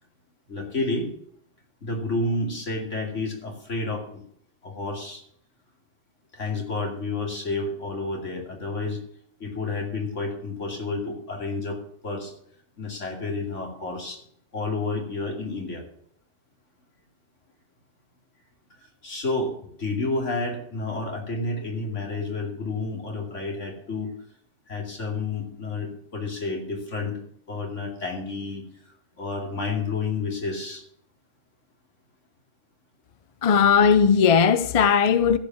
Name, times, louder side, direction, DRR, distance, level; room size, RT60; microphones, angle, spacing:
voice 1, 0.5-1.1 1.8-4.2 4.6-5.2 6.3-9.0 9.4-11.8 12.0-12.3 12.8-14.2 14.5-15.9 18.8-24.1 24.7-27.2 27.5-30.8, left 3 dB, 75° left, 2.9 m, -30 dB
voice 2, 33.4-35.4, left 6 dB, 40° left, 0.5 m, -18 dB
15.0 x 5.2 x 7.1 m
omnidirectional pair, 1.3 m